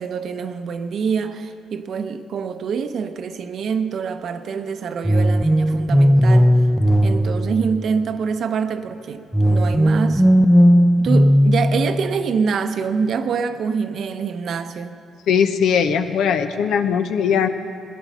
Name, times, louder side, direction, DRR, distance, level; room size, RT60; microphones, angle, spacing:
voice 1, 0.0-6.5 7.0-10.2 11.0-15.0, right 6 dB, 65° right, 0.8 m, -25 dB
sound 1, 5.0-8.2 9.3-12.3, equal, 5° right, 0.5 m, -16 dB
voice 2, 15.3-17.5, left 7 dB, 80° left, 0.8 m, -19 dB
17.5 x 10.5 x 6.1 m
cardioid pair, 90°, 0 cm